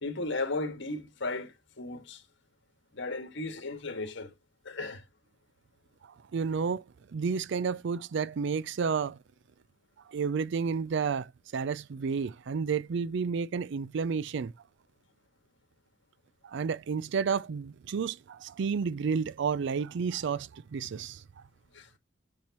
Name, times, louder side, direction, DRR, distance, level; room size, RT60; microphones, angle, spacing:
voice 1, 0.0-2.2 2.9-4.3 4.7-5.0 21.7-21.9, left 2 dB, 70° left, 1.7 m, -35 dB
voice 2, 6.3-6.8 7.1-9.2 10.1-14.5 16.4-21.2, right 5 dB, 65° right, 0.4 m, -31 dB
7.2 x 6.3 x 2.9 m
head